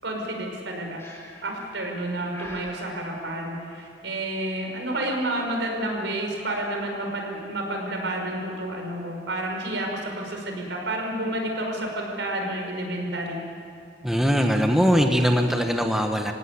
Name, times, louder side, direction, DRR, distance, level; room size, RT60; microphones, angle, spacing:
voice 1, 0.0-1.0 1.4-13.4, right 1 dB, 85° right, 1 dB, 5.5 m, -30 dB
Breathing, 1.0-1.6 2.3-2.9, left 1 dB, 15° left, 4.6 m, -43 dB
voice 2, 14.0-16.3, equal, ahead, 3 dB, 1.3 m, -21 dB
26.0 x 17.0 x 9.7 m, 2.4 s
head